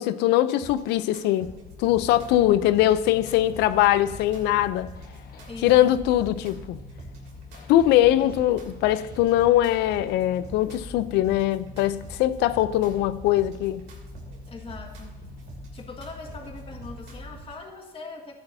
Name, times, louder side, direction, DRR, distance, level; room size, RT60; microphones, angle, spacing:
voice 1, 0.0-1.5 1.8-4.9 5.6-6.8 7.7-13.9, left 13 dB, 90° left, 0.6 m, -21 dB
sound 1, 0.6-17.6, right 4 dB, 85° right, 2.9 m, -45 dB
drone and metro announcement, 1.6-17.4, left 4 dB, 60° left, 1.5 m, -44 dB
voice 2, 2.3-2.8 5.5-5.9 8.2-8.3 14.5-15.2 15.7-18.4, left 4 dB, 35° left, 1.8 m, -41 dB
14.0 x 10.5 x 2.7 m
cardioid pair, 110°, 17 cm